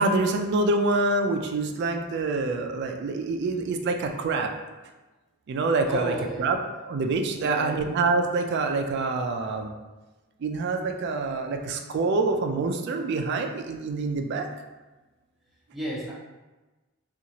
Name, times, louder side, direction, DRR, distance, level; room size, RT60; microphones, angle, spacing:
voice 1, 0.0-4.5 5.5-6.6 6.9-9.7 10.4-14.5, right 3 dB, 55° right, 5 dB, 0.3 m, -26 dB
voice 2, 5.9-6.4 7.3-7.8 15.7-16.1, equal, ahead, -7 dB, 0.6 m, -33 dB
2.7 x 2.4 x 2.9 m, 1.2 s
head